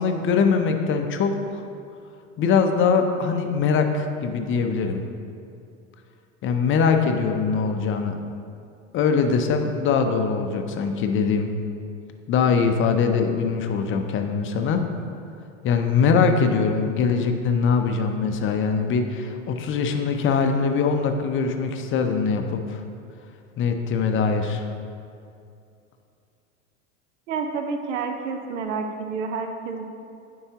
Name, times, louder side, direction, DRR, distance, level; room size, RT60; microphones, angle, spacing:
voice 1, 0.0-1.6 2.4-5.0 6.4-8.2 8.9-11.5 12.3-14.8 15.6-22.8 23.6-24.7, left 5 dB, 35° left, 6 dB, 0.6 m, -22 dB
voice 2, 27.3-29.9, right 5 dB, 75° right, 5 dB, 0.7 m, -29 dB
9.5 x 4.7 x 2.9 m, 2.5 s
hypercardioid pair, 90°, 38 cm